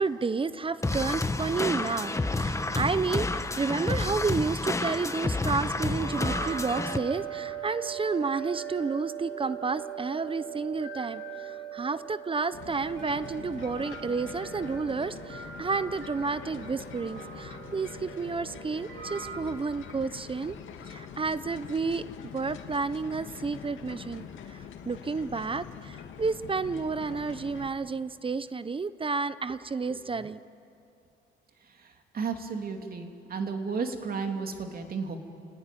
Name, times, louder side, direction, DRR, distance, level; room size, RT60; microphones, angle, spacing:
voice 1, 0.0-20.6 20.9-22.0 22.3-30.4, right 4 dB, 25° right, 15 dB, 0.7 m, -31 dB
sound 1, 0.8-7.0, left 2 dB, 15° left, 1.3 m, -30 dB
sound 2, 5.8-19.4, right 9 dB, 70° right, 7.7 m, -40 dB
sound 3, 12.5-27.7, left 8 dB, 75° left, 2.2 m, -44 dB
voice 2, 31.8-35.2, right 5 dB, 50° right, 4 dB, 2.8 m, -33 dB
29.5 x 18.5 x 9.2 m, 2.7 s
cardioid pair, 90°, 20 cm